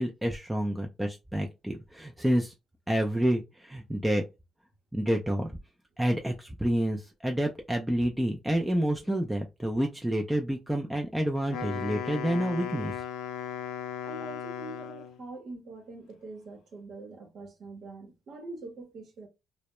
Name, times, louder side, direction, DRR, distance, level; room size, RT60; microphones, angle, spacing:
voice 1, 0.0-2.5 2.9-4.2 4.9-5.5 6.0-12.9, right 1 dB, 5° right, 0.4 m, -28 dB
Wind instrument woodwind instrument, 11.4-15.2, left 8 dB, 90° left, 0.4 m, -37 dB
voice 2, 14.0-19.3, right 3 dB, 65° right, 0.8 m, -44 dB
2.1 x 2.0 x 2.9 m
cardioid pair, 90°, 0 cm